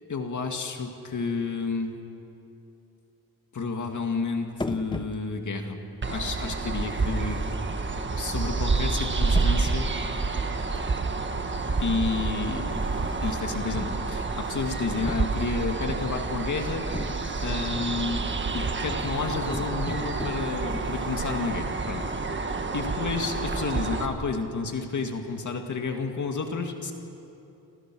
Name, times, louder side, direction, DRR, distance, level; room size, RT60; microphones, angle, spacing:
voice 1, 0.1-1.9 3.5-5.8 6.1-7.4 8.2-9.9 11.8-12.8 13.2-16.9 17.4-18.3 18.5-22.0 22.7-26.9, left 4 dB, 50° left, 4 dB, 2.3 m, -30 dB
sound 1, 4.6-5.6 6.8-8.0 8.7-9.8 10.8-11.2 12.7-13.6 14.3-15.7 16.9-17.7 18.9-21.7, left 2 dB, 10° left, 0.8 m, -39 dB
sound 2, 6.0-24.1, right 3 dB, 30° right, 1.6 m, -29 dB
28.0 x 28.0 x 6.3 m, 2.8 s
wide cardioid pair, 140°, 38 cm